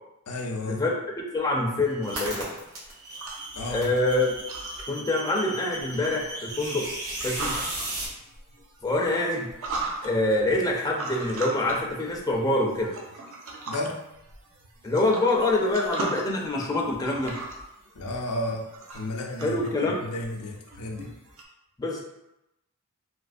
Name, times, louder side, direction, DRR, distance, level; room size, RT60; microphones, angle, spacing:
voice 1, 0.3-0.8 3.6-3.9 13.7-14.0 17.9-18.7 18.9-21.1, left 1 dB, 80° left, 1 dB, 0.5 m, -32 dB
voice 2, 1.3-2.5 3.7-4.3 4.9-6.9 7.2-7.5 8.8-9.5 10.0-13.0 14.8-17.4 19.4-20.0 21.8-22.0, left 2 dB, 15° left, -1 dB, 0.4 m, -25 dB
sound 1, 1.9-8.1, right 1 dB, 85° right, 1.3 m, -36 dB
sound 2, 2.5-21.4, right 2 dB, 65° right, 0.6 m, -40 dB
3.2 x 2.9 x 2.5 m, 0.89 s
head